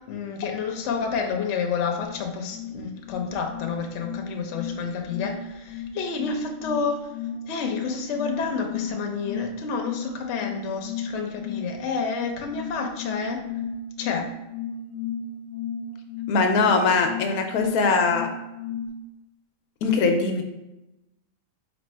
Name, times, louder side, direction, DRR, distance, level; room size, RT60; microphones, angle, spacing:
voice 1, 0.1-7.1 7.5-13.4 14.0-14.3 17.8-17.9, left 5 dB, 60° left, 3 dB, 0.9 m, -29 dB
sound 1, 2.1-18.9, left 5 dB, 70° right, 1.9 m, -35 dB
voice 2, 16.3-18.3 19.8-20.4, left 4 dB, 85° left, 4 dB, 1.1 m, -21 dB
4.3 x 2.9 x 4.3 m, 0.97 s
omnidirectional pair, 1.6 m